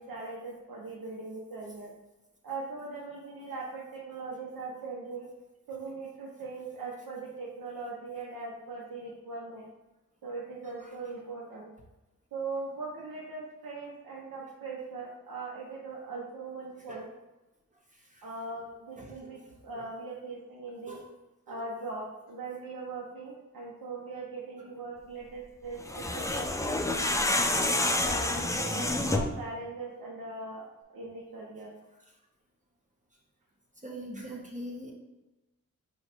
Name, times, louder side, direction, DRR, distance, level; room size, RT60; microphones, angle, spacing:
voice 1, 0.0-1.9 2.4-5.3 5.7-9.7 10.2-11.7 12.3-17.1 18.2-21.0 21.5-26.5 26.9-27.3 28.0-30.6 30.9-31.7, right 3 dB, 75° right, -4 dB, 0.9 m, -40 dB
voice 2, 17.9-18.3 19.0-19.9 20.9-21.0 21.5-21.7 27.1-27.2 29.3-29.4 32.1-32.2 33.8-34.9, equal, 20° right, -2 dB, 1.1 m, -44 dB
sound 1, 25.8-29.4, left 2 dB, 10° left, 0.4 m, -28 dB
4.0 x 2.5 x 4.4 m, 1.0 s
cardioid pair, 40°, 35 cm